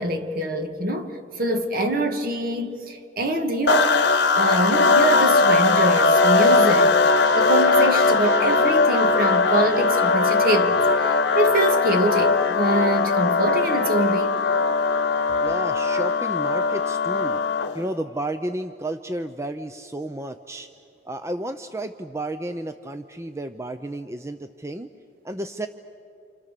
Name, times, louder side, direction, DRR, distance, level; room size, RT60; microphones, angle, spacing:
voice 1, 0.0-4.0 4.4-7.0 7.4-14.4, right 1 dB, 50° right, 1.8 m, -24 dB
sound 1, 3.7-17.9, left 4 dB, 65° left, 1.3 m, -19 dB
voice 2, 15.4-17.4 17.7-20.7 21.1-24.9 25.2-25.7, right 1 dB, 15° right, 0.5 m, -32 dB
29.0 x 28.0 x 6.7 m
head